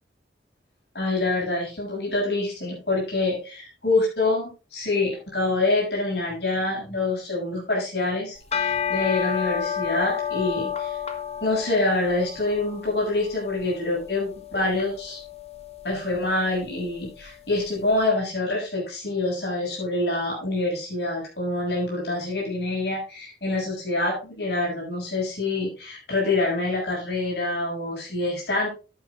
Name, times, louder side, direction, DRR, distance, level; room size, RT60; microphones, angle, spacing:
voice 1, 0.9-11.0 11.4-15.2 15.8-28.7, left 2 dB, 70° left, -3 dB, 7.1 m, -26 dB
sound 1, 8.4-17.7, left 8 dB, 35° left, 1.3 m, -32 dB
10.0 x 10.0 x 3.7 m, 0.33 s
head